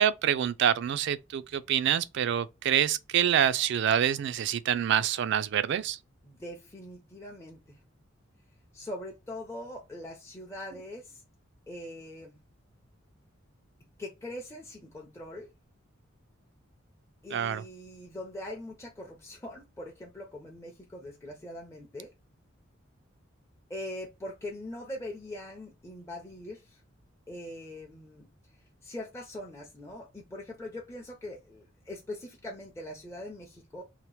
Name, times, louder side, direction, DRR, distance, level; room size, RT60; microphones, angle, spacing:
voice 1, 0.0-6.0 17.3-17.6, right 9 dB, 60° right, 0.3 m, -26 dB
voice 2, 6.2-7.8 8.7-11.2 11.7-12.4 14.0-15.5 17.2-22.1 23.7-26.8 27.3-28.3 28.8-33.8, left 1 dB, 15° left, 0.5 m, -42 dB
2.8 x 2.1 x 3.0 m
head